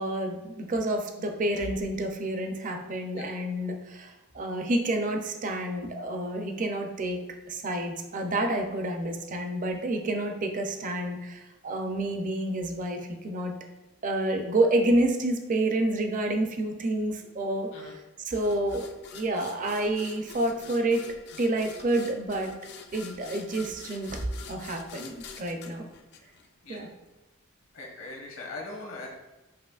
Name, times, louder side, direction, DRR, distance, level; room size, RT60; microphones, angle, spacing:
voice 1, 0.0-7.2 7.5-13.5 14.0-18.0 18.3-18.9 19.1-21.1 21.4-22.5 22.9-25.9 26.7-26.9, right 1 dB, 40° right, 4 dB, 0.5 m, -29 dB
sound 1, 18.3-26.8, left 5 dB, 50° left, 0.4 m, -46 dB
voice 2, 27.7-29.1, left 3 dB, 70° left, -2 dB, 1.2 m, -40 dB
7.5 x 2.9 x 2.4 m, 1.0 s
head